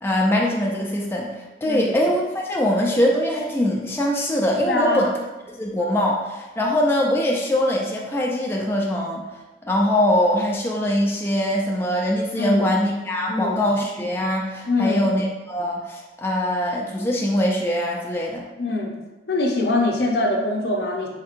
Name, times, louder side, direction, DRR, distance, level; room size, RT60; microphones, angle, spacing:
voice 1, 0.0-5.1 5.5-9.3 9.6-18.4, left 1 dB, 15° left, -2 dB, 0.3 m, -22 dB
voice 2, 1.7-2.0 4.7-5.0 12.4-12.8 13.3-13.6 14.6-15.0 18.6-18.9 19.3-21.1, left 2 dB, 60° left, 1 dB, 0.6 m, -23 dB
4.3 x 3.6 x 2.5 m, 1.1 s
head